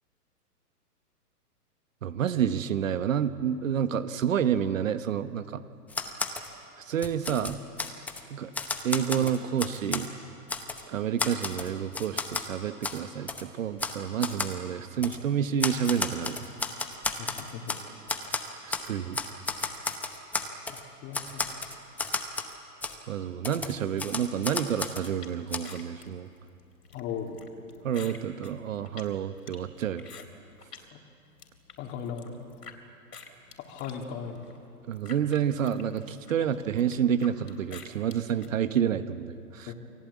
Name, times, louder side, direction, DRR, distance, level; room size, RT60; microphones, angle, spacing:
voice 1, 2.0-5.6 6.8-7.6 8.3-8.5 8.8-10.1 10.9-16.4 18.6-19.2 23.1-26.3 27.8-30.0 34.9-39.7, right 8 dB, 55° right, 11 dB, 1.3 m, -29 dB
Typewriter, 5.9-6.5 6.9-8.2 8.5-10.1 10.5-10.8 11.2-12.5 12.8-13.0 13.3-13.4 13.8-14.0 14.2-14.5 15.0-15.2 15.6-17.8 18.1-18.9 19.1-20.8 21.1-22.5 22.8-22.9 23.4-25.1 25.5-25.6, left 3 dB, 5° left, 0.8 m, -32 dB
voice 2, 17.2-17.8 20.7-21.4 26.9-27.4 30.9-31.0 31.8-32.5 33.7-34.4 36.4-36.6 39.7-39.8, left 7 dB, 20° left, 2 dB, 2.8 m, -38 dB
sound 1, 25.2-30.9 31.2-32.8 33.1-38.5, left 6 dB, 80° left, 4.2 m, -49 dB
29.0 x 20.0 x 8.5 m, 2.5 s
hypercardioid pair, 140°, 47 cm